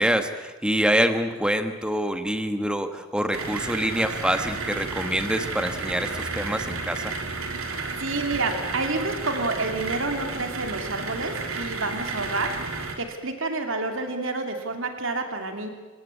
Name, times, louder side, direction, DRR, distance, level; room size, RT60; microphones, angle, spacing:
voice 1, 0.0-7.1, equal, 5° right, 8 dB, 1.4 m, -25 dB
sound 1, 3.3-13.0, right 4 dB, 80° right, 3.0 m, -32 dB
voice 2, 8.0-12.5 13.0-15.7, right 3 dB, 60° right, 5 dB, 2.9 m, -29 dB
27.0 x 18.0 x 8.4 m, 1.3 s
head